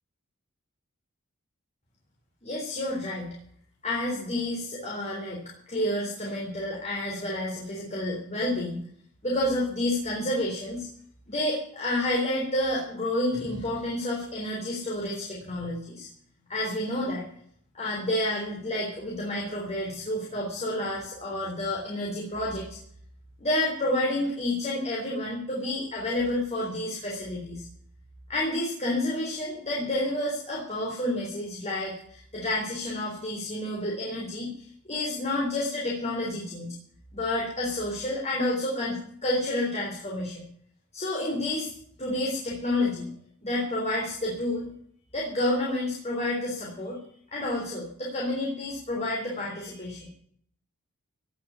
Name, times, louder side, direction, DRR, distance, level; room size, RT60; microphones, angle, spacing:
voice 1, 2.4-3.3 3.8-5.4 5.7-8.8 9.2-10.9 11.3-16.1 16.5-17.2 17.7-22.8 23.4-27.7 28.3-36.7 37.1-40.4 40.9-41.7 42.0-43.1 43.4-44.7 45.1-47.0 47.3-50.1, left 1 dB, 30° left, -4 dB, 3.8 m, -29 dB
17.0 x 6.7 x 8.8 m, 0.63 s
head